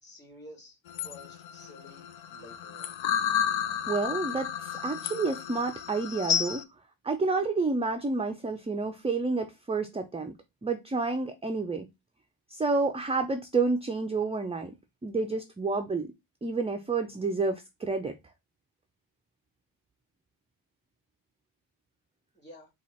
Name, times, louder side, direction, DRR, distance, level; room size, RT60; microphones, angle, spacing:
voice 1, 0.0-3.0 22.3-22.7, left 1 dB, 20° left, 2.8 m, -51 dB
sound 1, 0.9-6.6, left 9 dB, 70° left, 0.6 m, -32 dB
voice 2, 3.9-6.6 7.0-10.4 10.6-11.9 12.5-14.7 15.0-16.1 16.4-18.1, right 3 dB, 15° right, 0.4 m, -29 dB
4.3 x 2.4 x 4.1 m
cardioid pair, 90°, 48 cm